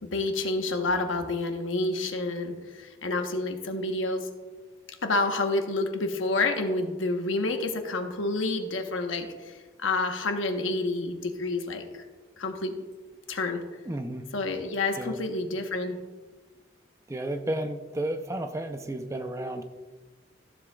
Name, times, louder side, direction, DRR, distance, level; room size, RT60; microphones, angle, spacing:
voice 1, 0.0-4.3 5.0-9.5 9.8-11.8 12.4-12.8 13.3-13.6 14.3-16.0, left 2 dB, 90° left, 5 dB, 1.0 m, -29 dB
voice 2, 13.8-14.3 15.0-15.2 17.1-19.6, right 1 dB, 15° right, 7 dB, 0.5 m, -32 dB
14.5 x 7.2 x 2.3 m, 1.3 s
head